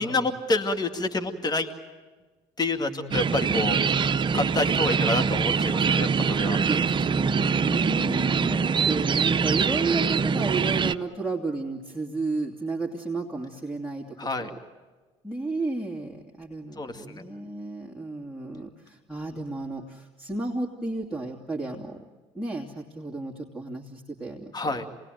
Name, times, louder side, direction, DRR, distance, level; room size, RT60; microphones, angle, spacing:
voice 1, 0.0-1.7 2.6-3.8 4.3-6.6 14.2-14.5 16.8-17.2 24.5-24.9, left 2 dB, 30° left, 6 dB, 2.2 m, -28 dB
voice 2, 2.8-3.3 6.6-14.6 15.2-22.0 22.3-24.8, right 3 dB, ahead, -1 dB, 2.7 m, -33 dB
sound 1, 3.1-10.9, right 5 dB, 35° right, 0.8 m, -24 dB
27.5 x 20.0 x 9.3 m, 1.3 s
hypercardioid pair, 65°, 14 cm